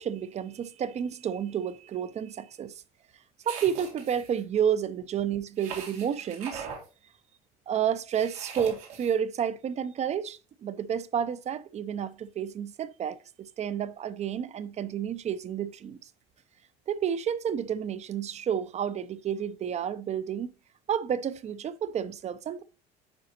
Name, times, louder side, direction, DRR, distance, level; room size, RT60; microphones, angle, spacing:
voice 1, 0.0-2.8 3.5-6.7 7.7-16.1 16.9-20.5 20.9-22.6, right 8 dB, 35° right, 0.5 m, -30 dB
sound 1, 3.4-4.4 5.6-6.8 8.1-9.1, right 6 dB, 90° right, 2.1 m, -40 dB
9.6 x 4.0 x 2.8 m
supercardioid pair, 90°, 19 cm